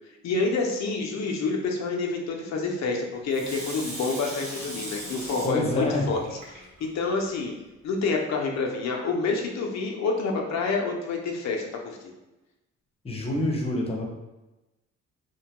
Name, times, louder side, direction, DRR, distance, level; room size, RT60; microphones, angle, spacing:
voice 1, 0.2-6.2 6.5-7.5 7.8-12.0, left 4 dB, 65° left, 1 dB, 0.5 m, -28 dB
Water tap faucet / Sink (filling or washing), 3.3-7.1 7.6-7.7, right 1 dB, 85° right, 0.9 m, -39 dB
voice 2, 5.4-6.1 13.0-14.0, left 1 dB, 20° left, -1 dB, 0.6 m, -26 dB
2.8 x 2.2 x 2.8 m, 1.0 s
cardioid pair, 90°, 30 cm